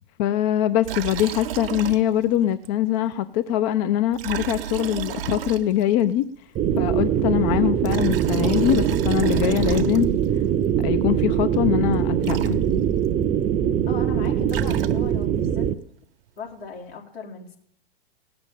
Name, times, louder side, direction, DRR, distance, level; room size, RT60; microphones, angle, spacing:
voice 1, 0.2-6.3 6.8-10.1 10.8-12.6, left 12 dB, 40° left, 13 dB, 0.6 m, -23 dB
Liquid, 0.8-2.4 2.6-2.7 4.1-6.0 7.6-10.3 11.9-12.0 12.2-13.1 14.2-15.3, right 9 dB, 65° right, 1.0 m, -32 dB
sound 1, 6.6-15.7, right 9 dB, 25° right, 0.7 m, -22 dB
voice 2, 13.9-15.7 16.4-17.6, left 5 dB, 80° left, -1 dB, 3.9 m, -38 dB
17.0 x 7.0 x 9.1 m, 0.68 s
hypercardioid pair, 110°, 30 cm